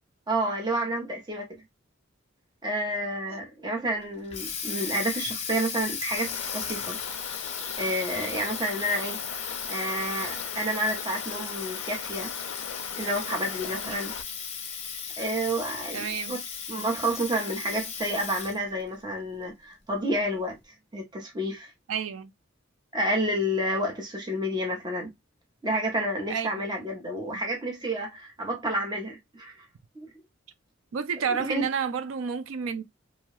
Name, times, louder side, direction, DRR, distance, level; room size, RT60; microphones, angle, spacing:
voice 1, 0.3-1.6 2.6-7.0 7.8-12.3 12.9-14.1 15.2-16.4 16.7-20.6 20.9-21.7 22.9-25.1 25.6-29.7 29.9-30.1 31.3-31.6, right 1 dB, 20° right, 0.8 m, -30 dB
Water tap faucet, 4.0-18.7, left 6 dB, 30° left, 0.7 m, -36 dB
sound 1, 6.2-14.2, left 7 dB, 80° left, 0.4 m, -40 dB
voice 2, 15.9-16.3 21.9-22.3 26.3-26.5 27.3-27.4 30.9-32.8, right 6 dB, 80° right, 0.4 m, -30 dB
2.8 x 2.3 x 3.0 m
head